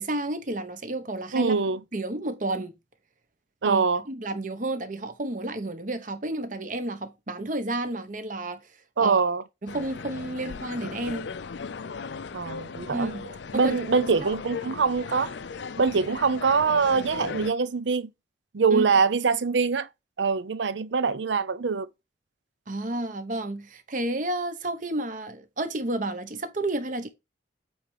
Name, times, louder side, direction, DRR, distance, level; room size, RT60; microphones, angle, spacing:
voice 1, 0.0-1.5 1.9-2.7 3.6-8.6 9.0-9.2 9.6-11.3 12.9-13.8 14.2-14.3 18.7-18.9 22.7-27.1, right 1 dB, 45° right, 1.0 m, -31 dB
voice 2, 1.3-1.8 3.6-4.0 9.0-9.4 12.3-13.1 13.5-15.3 15.8-18.1 18.5-19.9 20.2-21.9, right 5 dB, 75° right, 0.6 m, -24 dB
sound 1, 9.7-17.5, left 5 dB, 70° left, 0.5 m, -37 dB
8.6 x 3.4 x 4.7 m
head